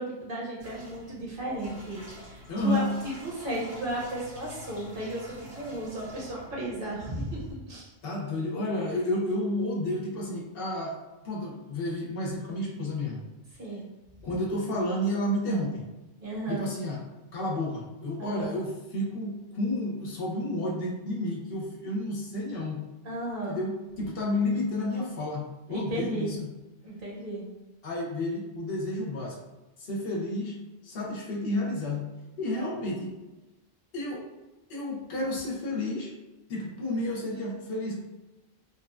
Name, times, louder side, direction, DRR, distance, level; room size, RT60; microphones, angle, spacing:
voice 1, 0.0-7.9 13.6-13.9 16.2-16.7 18.2-18.5 23.0-23.6 25.7-26.4 26.8-27.5, right 1 dB, 60° right, -5 dB, 1.0 m, -34 dB
sound 1, 0.6-7.5, left 1 dB, 75° right, 1.3 m, -47 dB
voice 2, 2.5-2.8 8.0-11.0 11.2-13.2 14.2-15.8 16.5-17.0 17.3-22.8 23.5-26.5 27.8-29.4 29.8-30.5 30.8-32.1 32.4-33.1 33.9-34.3 34.7-36.1 36.5-37.9, left 1 dB, 70° left, -2 dB, 0.8 m, -31 dB
2.9 x 2.1 x 2.4 m, 1.1 s
omnidirectional pair, 1.1 m